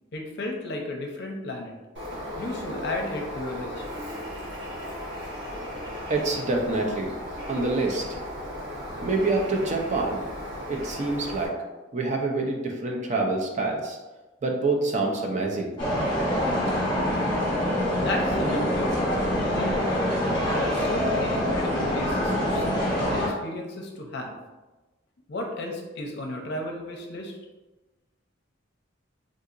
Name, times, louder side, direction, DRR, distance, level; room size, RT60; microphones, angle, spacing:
voice 1, 0.1-1.7 2.4-3.8 17.9-19.1 19.4-19.9 20.4-24.3 25.3-27.4, left 1 dB, 60° left, 1 dB, 0.6 m, -33 dB
Bird, 1.9-11.5, equal, 60° right, 1.2 m, -36 dB
voice 2, 6.1-7.1 7.5-8.0 9.0-10.2 10.7-11.5 11.9-14.0 14.4-15.7, right 3 dB, 35° right, 1 dB, 0.4 m, -26 dB
sound 1, 15.8-23.3, equal, 25° left, 1.3 m, -25 dB
3.7 x 2.8 x 2.5 m, 1.2 s
head